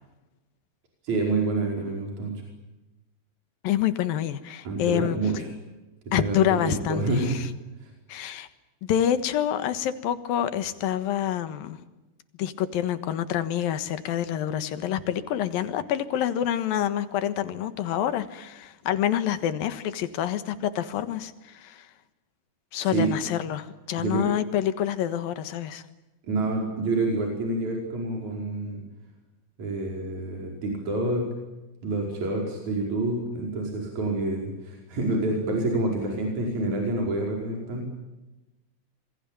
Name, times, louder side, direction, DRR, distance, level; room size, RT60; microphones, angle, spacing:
voice 1, 1.0-2.4 4.6-5.5 6.1-6.4 6.6-7.4 22.8-23.1 24.0-24.3 26.3-28.8 29.6-31.2 31.8-38.0, right 2 dB, 50° right, 1 dB, 6.2 m, -28 dB
voice 2, 3.6-5.2 6.1-7.5 8.1-8.5 8.8-11.8 12.4-21.9 22.7-25.8, left 10 dB, 75° left, 12 dB, 3.2 m, -27 dB
27.0 x 22.5 x 9.0 m, 1.0 s
omnidirectional pair, 4.3 m